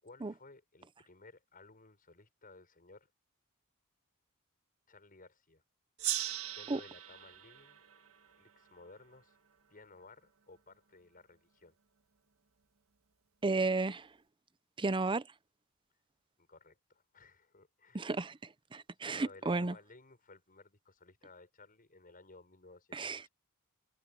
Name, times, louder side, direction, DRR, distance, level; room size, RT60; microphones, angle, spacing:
voice 1, 0.0-3.1 4.9-5.6 6.5-7.8 8.3-9.4 9.7-11.8 16.4-18.1 19.0-23.3, left 3 dB, 40° left, 6.4 m, -57 dB
Gong, 6.0-9.1, right 13 dB, 70° right, 1.6 m, -40 dB
voice 2, 13.4-14.1 14.8-15.2 17.9-18.4 18.7-19.7 22.9-23.2, right 3 dB, 20° right, 0.6 m, -33 dB
head